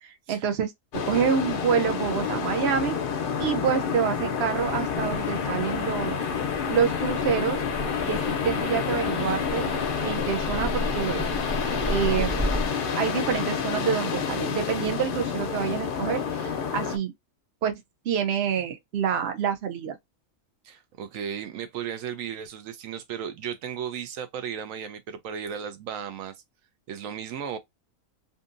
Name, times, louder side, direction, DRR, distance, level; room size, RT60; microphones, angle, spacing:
voice 1, 0.0-0.7 1.1-3.0 3.4-6.2 6.7-7.6 8.1-9.7 10.0-11.2 11.9-12.5 13.0-17.1 17.6-20.0, right 7 dB, 60° right, 0.9 m, -27 dB
sound 1, 0.9-17.0, left 6 dB, 60° left, 0.6 m, -29 dB
Train, 4.6-12.7, equal, 30° right, 0.8 m, -34 dB
voice 2, 20.6-26.3 26.9-27.6, right 8 dB, 85° right, 1.0 m, -35 dB
2.6 x 2.6 x 2.4 m
omnidirectional pair, 1.4 m